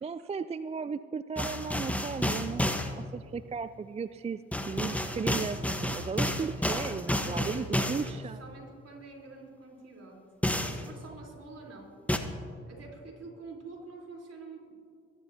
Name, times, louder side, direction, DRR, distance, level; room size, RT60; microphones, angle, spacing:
voice 1, 0.0-2.7 3.0-8.4, right 5 dB, 20° right, 14 dB, 0.3 m, -36 dB
sound 1, 1.4-2.9 4.5-8.1 10.4-10.8 12.1-12.2, left 1 dB, 5° left, 1.2 m, -30 dB
voice 2, 7.1-8.0 8.4-10.3 10.6-12.0 12.7-14.7, right 3 dB, 50° right, -2 dB, 3.9 m, -46 dB
24.5 x 11.5 x 2.9 m, 2.4 s
hypercardioid pair, 45°, 31 cm